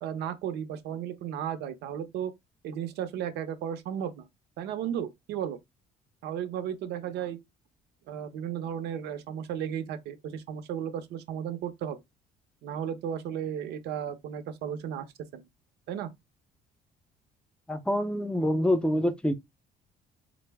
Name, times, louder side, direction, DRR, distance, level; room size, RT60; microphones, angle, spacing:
voice 1, 0.0-2.3 2.6-4.2 4.6-5.6 6.2-7.4 8.1-12.0 12.6-15.1 15.3-15.4 15.9-16.1, right 9 dB, 80° right, 0.6 m, -34 dB
voice 2, 17.7-19.3, left 1 dB, 5° left, 0.5 m, -26 dB
3.7 x 2.0 x 3.3 m
cardioid pair, 110°, 17 cm